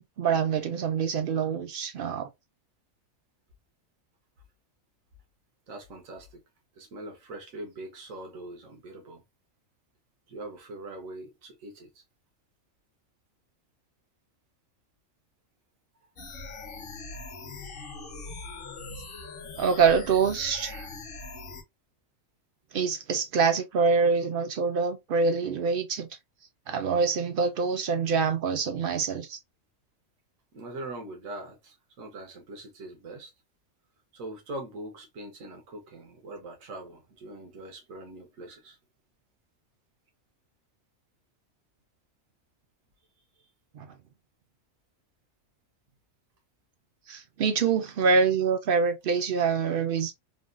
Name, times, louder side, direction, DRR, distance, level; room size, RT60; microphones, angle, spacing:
voice 1, 0.0-2.3 19.6-20.9 22.7-26.1 26.7-29.4 43.7-43.9 47.1-50.1, right 5 dB, 65° right, 0.5 m, -25 dB
voice 2, 5.7-6.4 6.7-9.2 10.3-12.0 30.5-33.3 34.1-38.8 43.4-43.5, right 2 dB, 85° right, 1.3 m, -42 dB
sound 1, 16.2-21.6, left 3 dB, 50° left, 0.9 m, -41 dB
3.4 x 2.2 x 2.4 m
omnidirectional pair, 1.4 m